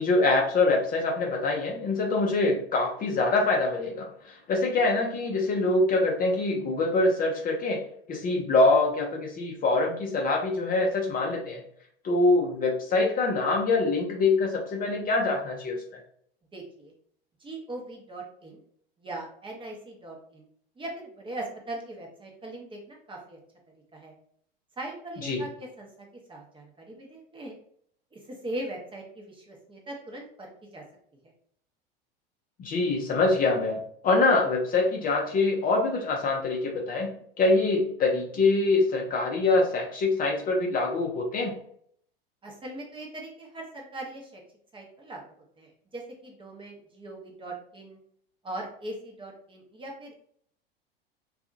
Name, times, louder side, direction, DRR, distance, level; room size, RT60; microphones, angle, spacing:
voice 1, 0.0-11.6 12.0-16.0 25.2-25.4 32.6-41.5, left 3 dB, 30° left, 0 dB, 0.6 m, -25 dB
voice 2, 16.5-16.9 17.4-18.6 19.0-20.5 20.8-23.4 23.9-24.1 24.8-27.5 28.1-30.8 42.4-44.4 44.7-45.2 45.6-48.0 48.4-50.2, right 1 dB, 15° right, 0 dB, 0.7 m, -40 dB
2.6 x 2.4 x 2.5 m, 0.63 s
hypercardioid pair, 85°, 30 cm